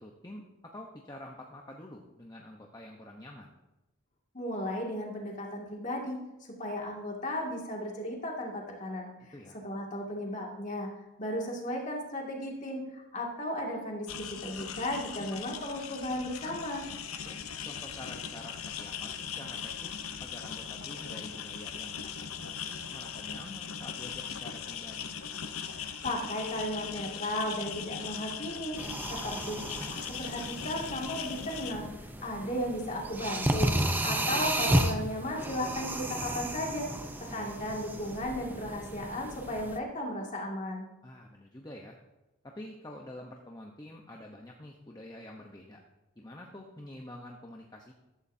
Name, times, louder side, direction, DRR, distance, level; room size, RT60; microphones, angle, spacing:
voice 1, 0.0-3.5 9.3-9.6 17.3-19.9 20.2-25.1 37.3-37.6 41.0-42.0 42.4-45.8 46.2-47.9, left 1 dB, 20° left, 1 dB, 0.9 m, -47 dB
voice 2, 4.3-6.2 6.6-9.1 9.6-10.9 11.2-16.9 25.7-28.8 29.1-29.6 29.9-31.9 32.2-36.9 37.3-40.9, left 1 dB, 35° left, -1 dB, 2.2 m, -35 dB
sound 1, 14.1-31.7, left 7 dB, 85° left, 0.8 m, -40 dB
sound 2, 28.8-39.8, right 1 dB, 10° right, 0.6 m, -33 dB
14.5 x 13.0 x 2.7 m, 1.0 s
head